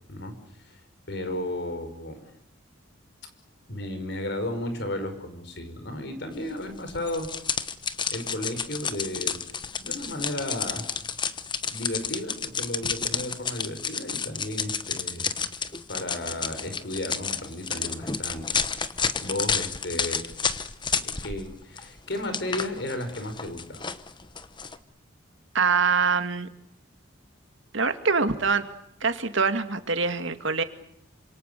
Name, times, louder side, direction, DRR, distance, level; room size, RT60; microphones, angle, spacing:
voice 1, 1.1-2.2 3.7-7.3 8.1-9.4 9.8-10.9 11.7-15.3 15.9-18.5 19.2-20.3 21.0-23.9, left 1 dB, 55° left, 8 dB, 5.2 m, -34 dB
sound 1, 6.9-21.5 21.8-24.8, left 6 dB, 25° left, 1.1 m, -31 dB
voice 2, 25.5-26.5 27.7-28.7 29.0-30.6, right 5 dB, 65° right, 9 dB, 2.2 m, -24 dB
28.0 x 26.5 x 6.9 m, 0.76 s
head